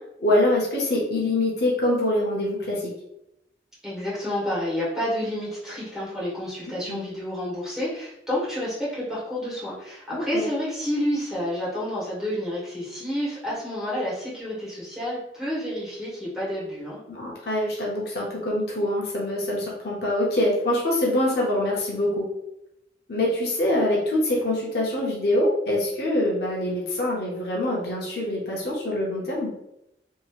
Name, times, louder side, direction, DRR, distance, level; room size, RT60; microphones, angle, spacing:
voice 1, 0.2-2.9 6.7-7.1 10.1-10.5 17.1-22.3 23.1-29.5, left 1 dB, 60° left, -3 dB, 0.7 m, -24 dB
voice 2, 3.8-17.0, equal, 5° right, -9 dB, 1.4 m, -29 dB
2.9 x 2.8 x 2.4 m, 0.83 s
head